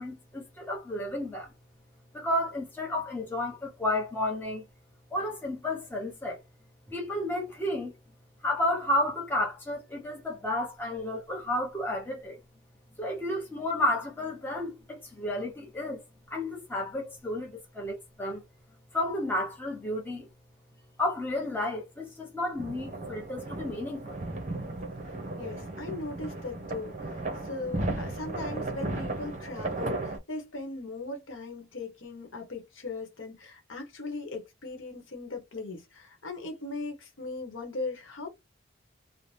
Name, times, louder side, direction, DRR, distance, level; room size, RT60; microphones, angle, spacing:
voice 1, 0.0-1.5 2.1-4.6 5.1-6.4 6.9-7.9 8.4-12.4 13.0-18.4 18.9-20.3 21.0-24.2, left 1 dB, 10° left, 0.7 m, -32 dB
sound 1, 22.6-30.2, right 2 dB, 35° right, 0.6 m, -35 dB
voice 2, 25.4-38.3, left 3 dB, 80° left, 0.9 m, -39 dB
2.6 x 2.0 x 3.1 m
head